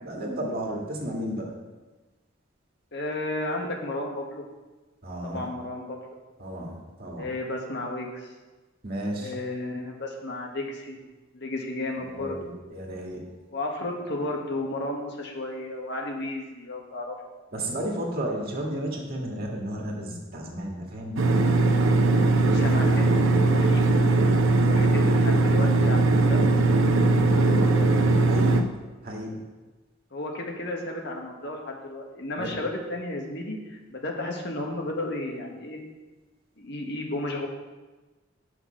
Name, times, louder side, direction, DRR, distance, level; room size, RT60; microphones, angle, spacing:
voice 1, 0.0-1.5 5.0-5.4 6.4-7.3 8.8-9.3 12.2-13.2 17.5-21.2 26.9-27.2 28.3-28.6 29.0-29.4 32.4-32.5, right 1 dB, 50° right, -1 dB, 1.8 m, -32 dB
voice 2, 2.9-4.5 5.2-6.2 7.2-8.3 9.2-11.0 11.3-12.4 13.5-17.1 22.4-23.9 24.6-26.5 27.3-27.9 30.1-35.8 36.6-37.5, left 2 dB, 60° left, 1 dB, 1.6 m, -33 dB
sound 1, 21.2-28.6, right 3 dB, 80° right, 0.8 m, -20 dB
8.4 x 5.9 x 5.7 m, 1.2 s
head